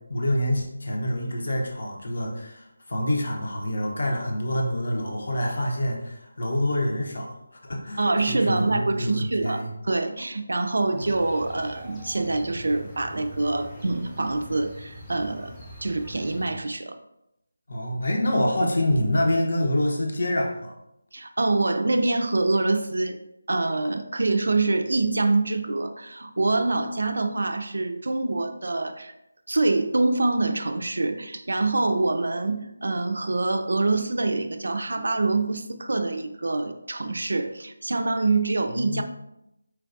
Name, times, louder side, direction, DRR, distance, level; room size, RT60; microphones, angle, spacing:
voice 1, 0.1-7.3 7.6-9.7 10.9-11.0 17.7-20.7 38.7-39.0, left 1 dB, 60° left, 0 dB, 0.7 m, -26 dB
voice 2, 8.0-15.5 15.8-17.0 21.1-23.2 23.5-29.1 29.5-39.0, right 2 dB, 70° right, 7 dB, 0.3 m, -25 dB
sound 1, 11.0-16.6, equal, 10° left, 0.7 m, -43 dB
4.4 x 2.3 x 2.5 m, 0.85 s
figure-of-eight pair, 160°, 0 cm